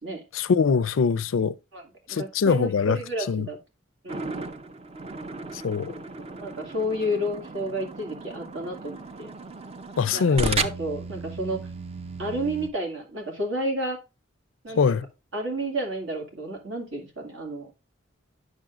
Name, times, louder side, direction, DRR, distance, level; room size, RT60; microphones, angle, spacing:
voice 1, 0.3-1.6 2.1-3.0 3.3-3.5 5.6-6.0 10.0-10.6 14.8-15.1, left 5 dB, 85° left, 0.4 m, -23 dB
voice 2, 1.7-3.6 4.0-4.5 5.9-9.3 10.1-11.6 12.2-14.0 14.6-14.8 15.3-17.7, equal, 75° right, 2.2 m, -31 dB
sound 1, 4.1-12.7, right 3 dB, 30° right, 0.5 m, -35 dB
8.9 x 6.5 x 2.4 m
head